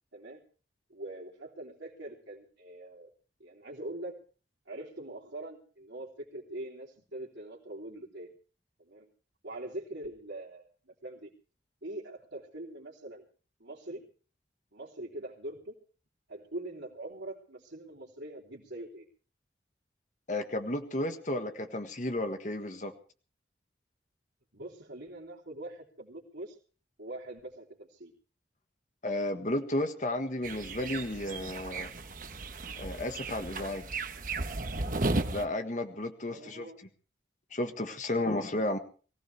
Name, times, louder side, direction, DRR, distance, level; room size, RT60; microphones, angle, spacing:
voice 1, 0.1-0.4 0.9-3.1 3.4-4.2 4.6-8.3 8.8-9.1 9.4-11.3 11.8-13.2 13.6-14.1 14.7-15.8 16.3-19.0 24.5-26.6 27.0-28.1 36.2-36.8, right 1 dB, 85° right, -4 dB, 3.5 m, -43 dB
voice 2, 20.3-22.9 29.0-31.9 32.8-33.9 35.3-36.7 37.5-38.8, left 1 dB, 45° left, 6 dB, 1.6 m, -33 dB
sound 1, 30.4-35.4, right 2 dB, 50° right, 1.2 m, -35 dB
23.0 x 16.0 x 3.5 m, 0.39 s
head